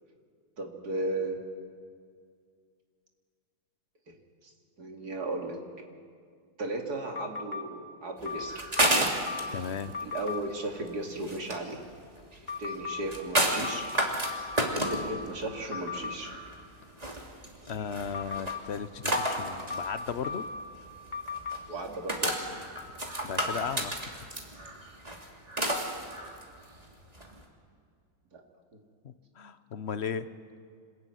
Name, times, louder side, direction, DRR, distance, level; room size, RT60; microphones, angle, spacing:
voice 1, 0.6-1.4 4.1-4.2 4.8-5.6 6.6-9.1 10.0-11.8 12.6-13.9 14.7-16.3 21.7-22.4 28.3-28.4, right 2 dB, 75° right, 2 dB, 3.1 m, -35 dB
sound 1, 7.1-7.6 8.2-9.6 9.9-10.4 12.5-13.0 13.6-15.3 15.7-16.2 18.1-18.6 19.1-20.6 21.1-21.6, left 5 dB, 30° left, 1.4 m, -36 dB
sound 2, 8.2-27.4, right 1 dB, 25° right, 2.8 m, -32 dB
voice 2, 9.5-10.0 17.7-20.5 23.0-24.0 29.0-30.3, left 7 dB, 50° left, 12 dB, 1.0 m, -36 dB
26.5 x 21.0 x 9.3 m, 2.1 s
omnidirectional pair, 1.7 m